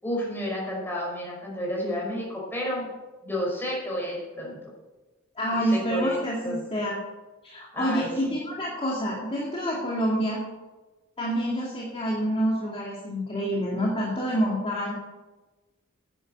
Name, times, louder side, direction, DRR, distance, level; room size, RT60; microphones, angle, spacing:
voice 1, 0.0-2.9 3.2-4.6 5.6-6.2 6.4-6.6 7.7-8.3, equal, 10° left, -3 dB, 5.5 m, -31 dB
voice 2, 5.4-7.0 7.4-10.4 11.2-14.9, equal, 25° left, -4 dB, 2.4 m, -27 dB
10.5 x 10.0 x 8.1 m, 1.2 s
head